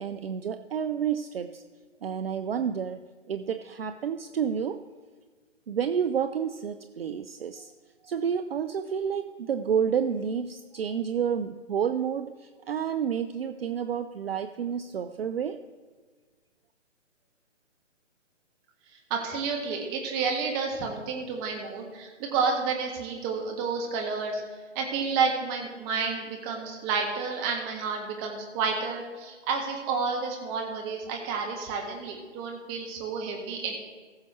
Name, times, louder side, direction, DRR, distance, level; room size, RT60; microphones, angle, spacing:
voice 1, 0.0-1.6 2.0-4.8 5.7-7.7 8.0-15.6, right 7 dB, 55° right, 10 dB, 0.5 m, -30 dB
voice 2, 19.1-24.4 24.7-33.8, right 5 dB, 20° right, 1 dB, 1.5 m, -30 dB
19.5 x 6.7 x 3.2 m, 1.4 s
figure-of-eight pair, 135°, 37 cm